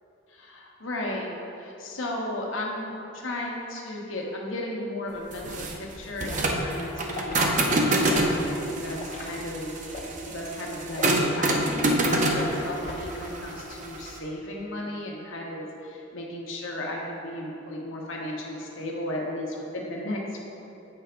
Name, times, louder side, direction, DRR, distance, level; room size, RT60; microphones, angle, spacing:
voice 1, 0.3-1.3 1.6-9.7 10.2-20.4, left 1 dB, 75° left, -2 dB, 1.0 m, -34 dB
sound 1, 5.3-14.2, right 1 dB, 40° right, 0.6 m, -26 dB
Liquid, 6.3-6.5 7.1-7.4 8.1-8.4 9.0-9.3 9.9-10.2 10.9-11.2 11.9-12.1 12.8-13.2 13.6-13.9, left 2 dB, 35° left, 0.7 m, -39 dB
7.7 x 3.4 x 5.0 m, 2.8 s
head